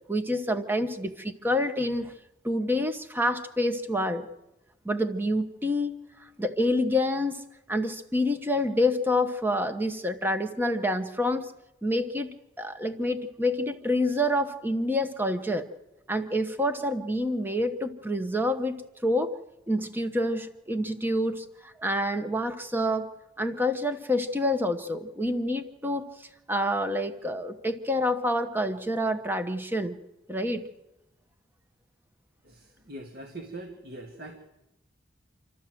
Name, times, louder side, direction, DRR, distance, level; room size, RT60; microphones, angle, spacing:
voice 1, 0.1-2.1 2.4-4.3 4.8-7.4 7.7-11.5 11.8-15.6 16.1-19.3 19.7-23.1 23.4-26.1 26.5-30.0 30.3-30.6, left 1 dB, 10° right, 8 dB, 1.0 m, -27 dB
voice 2, 32.4-34.4, right 2 dB, 50° right, 3 dB, 1.8 m, -42 dB
27.0 x 13.0 x 7.7 m, 0.93 s
head